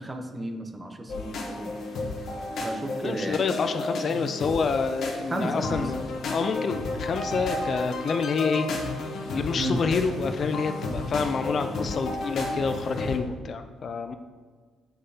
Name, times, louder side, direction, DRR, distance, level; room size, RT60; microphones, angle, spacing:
voice 1, 0.0-1.8 2.6-3.5 5.3-5.9 9.6-9.8, right 1 dB, 20° right, 5 dB, 0.7 m, -33 dB
sound 1, 1.1-13.2, left 2 dB, 70° left, 1.1 m, -32 dB
voice 2, 3.0-6.0 6.3-8.7 9.3-14.1, left 5 dB, 50° left, 8 dB, 0.4 m, -28 dB
7.5 x 5.1 x 2.8 m, 1.5 s
cardioid pair, 90°, 0 cm